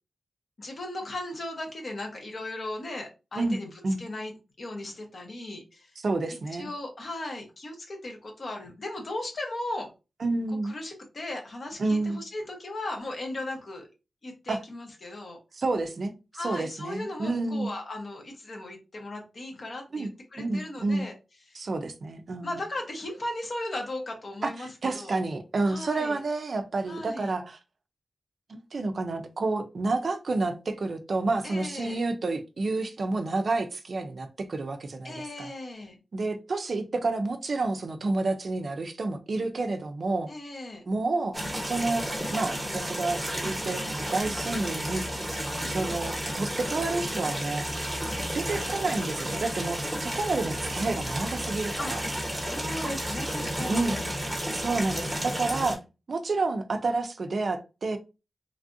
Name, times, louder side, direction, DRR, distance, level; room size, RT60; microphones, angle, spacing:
voice 1, 0.6-3.7 4.0-5.9 6.6-9.9 10.5-13.9 14.2-15.4 16.3-21.1 21.5-21.6 22.4-25.2 25.6-26.2 26.9-27.3 31.4-32.0 35.0-36.0 40.3-40.8 45.5-45.7 51.8-54.2, left 1 dB, 45° left, 0.9 m, -37 dB
voice 2, 6.0-6.7 10.2-10.8 11.8-12.2 14.5-14.6 15.5-16.1 16.4-17.7 19.9-20.1 20.4-21.0 21.5-22.6 24.4-27.6 28.5-35.5 36.1-40.3 40.9-45.0 45.7-47.6 48.3-52.0 53.7-54.0 54.5-55.8 56.1-58.0, right 3 dB, 50° right, 0.4 m, -29 dB
sound 1, 41.3-55.7, equal, 10° right, 1.0 m, -32 dB
3.3 x 2.4 x 2.6 m
wide cardioid pair, 165°, 0 cm